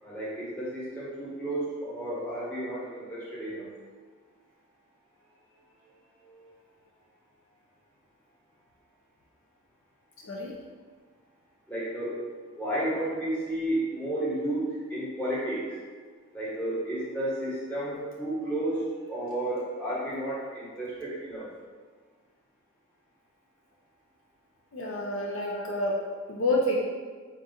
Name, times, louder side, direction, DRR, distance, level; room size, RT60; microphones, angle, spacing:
voice 1, 0.0-3.6 6.3-6.5 11.7-12.2 12.5-15.6 16.3-18.8 19.1-21.5 25.4-25.6, right 1 dB, 5° left, -9 dB, 1.1 m, -32 dB
voice 2, 24.7-25.9 26.3-26.8, left 1 dB, 60° left, -2 dB, 0.5 m, -28 dB
3.6 x 2.4 x 4.2 m, 1.5 s
head